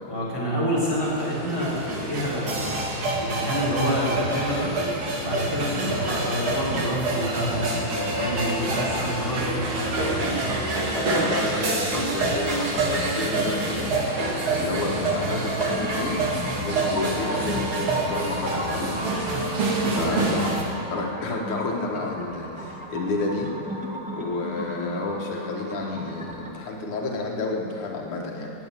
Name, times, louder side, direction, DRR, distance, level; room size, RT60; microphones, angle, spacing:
voice 1, 0.1-2.8 3.2-4.7 5.2-10.5 14.8-15.3 19.7-20.5, equal, 10° left, -8 dB, 4.9 m, -28 dB
sound 1, 0.8-20.6, right 2 dB, 75° right, 2.9 m, -27 dB
voice 2, 10.9-13.9 14.2-16.2 16.6-20.5 20.9-23.5 24.1-28.5, left 2 dB, 90° left, 0 dB, 2.4 m, -30 dB
sound 2, 12.9-26.5, equal, 5° right, 0.9 m, -36 dB
18.0 x 8.0 x 8.9 m, 2.7 s
omnidirectional pair, 2.3 m